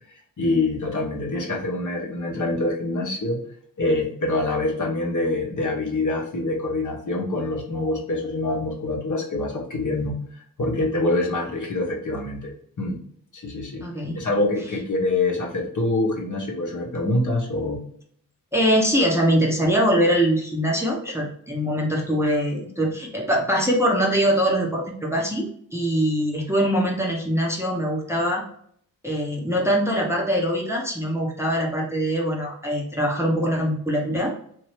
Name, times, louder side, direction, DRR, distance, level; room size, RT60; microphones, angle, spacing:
voice 1, 0.4-3.4 3.8-10.2 10.6-12.5 12.8-13.0 13.3-13.8 14.1-17.8, left 2 dB, 45° left, -1 dB, 1.2 m, -25 dB
voice 2, 13.8-14.2 18.5-28.4 29.0-34.3, equal, 5° right, -2 dB, 1.0 m, -23 dB
3.0 x 2.8 x 3.2 m, 0.64 s
supercardioid pair, 40°, 44 cm